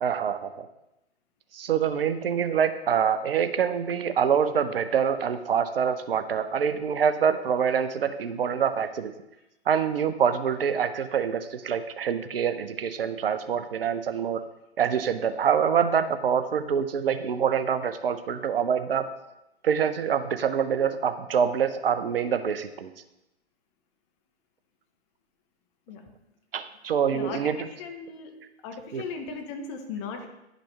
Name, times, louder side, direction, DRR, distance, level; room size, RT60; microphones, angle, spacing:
voice 1, 0.0-0.7 1.5-9.1 9.7-14.4 14.8-19.1 19.6-22.9 26.5-27.6 28.9-29.0, right 7 dB, 60° right, 10 dB, 0.6 m, -25 dB
voice 2, 27.8-28.3 28.6-30.3, left 5 dB, 25° left, 5 dB, 0.8 m, -37 dB
10.0 x 5.1 x 3.2 m, 0.90 s
figure-of-eight pair, 120°, 33 cm